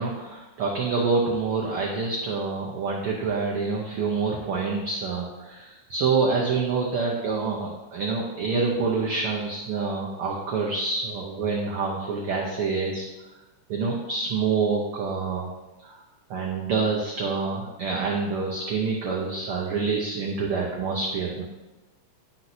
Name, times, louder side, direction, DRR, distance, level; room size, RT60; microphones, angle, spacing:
voice 1, 0.0-13.1 13.7-15.5 15.8-16.0 16.3-21.4, right 4 dB, 85° right, -2 dB, 1.2 m, -27 dB
11.0 x 5.9 x 2.7 m, 1.1 s
omnidirectional pair, 3.7 m